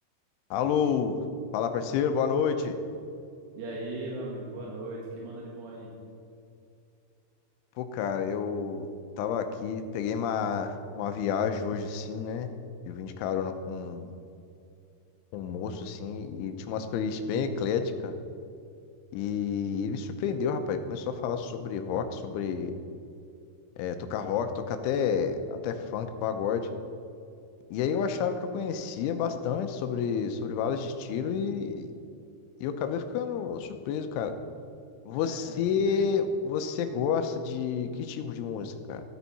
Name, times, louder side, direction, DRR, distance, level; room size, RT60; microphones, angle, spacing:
voice 1, 0.5-1.2 1.5-2.8 7.8-8.9 9.2-12.5 12.9-14.1 15.3-18.2 19.1-22.7 23.8-26.7 27.7-31.9 32.6-34.4 35.1-39.0, left 6 dB, 85° left, 8 dB, 3.2 m, -30 dB
voice 2, 3.6-5.9 35.3-36.1, right 2 dB, 80° right, -4 dB, 4.3 m, -38 dB
13.5 x 13.0 x 4.2 m, 2.6 s
omnidirectional pair, 5.6 m